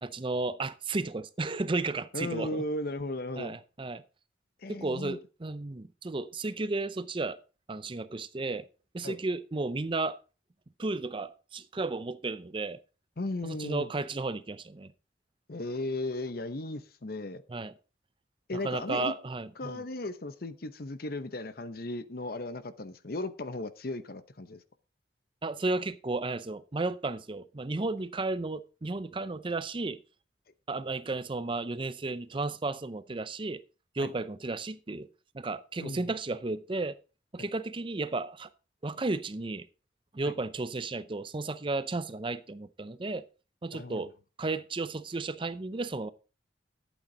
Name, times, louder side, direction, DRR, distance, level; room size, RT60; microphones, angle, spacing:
voice 1, 0.0-2.6 3.4-4.0 4.7-7.4 7.7-8.7 8.9-10.2 10.8-12.8 13.4-14.9 17.5-17.7 18.5-19.8 25.4-30.0 30.7-33.6 33.9-35.1 35.3-37.0 37.3-38.5 38.8-39.7 40.1-43.3 43.6-44.1 44.4-46.1, right 3 dB, 30° right, 0.5 m, -33 dB
voice 2, 2.1-3.6 4.6-5.2 9.0-9.2 13.2-13.9 15.5-17.4 18.5-19.1 19.6-24.6 34.0-34.1 35.8-36.1 37.4-37.5 40.2-40.3 43.7-44.0, left 2 dB, 55° left, 0.8 m, -36 dB
12.0 x 8.4 x 3.9 m
head